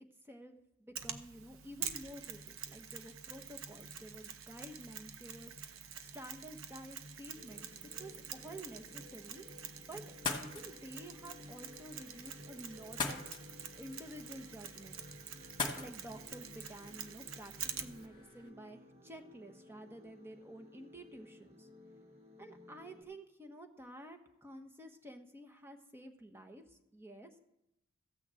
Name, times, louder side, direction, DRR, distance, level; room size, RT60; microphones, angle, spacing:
voice 1, 0.0-9.4 9.9-10.0 10.3-13.5 13.8-15.0 15.8-21.7 22.4-27.4, right 1 dB, 10° right, 5 dB, 1.1 m, -51 dB
Mechanisms, 1.0-18.1, right 7 dB, 70° right, 0.8 m, -47 dB
sound 1, 7.3-23.0, left 2 dB, 30° right, 1.4 m, -58 dB
sound 2, 10.1-18.5, left 4 dB, 20° left, 1.5 m, -44 dB
14.5 x 6.2 x 7.7 m, 0.84 s
head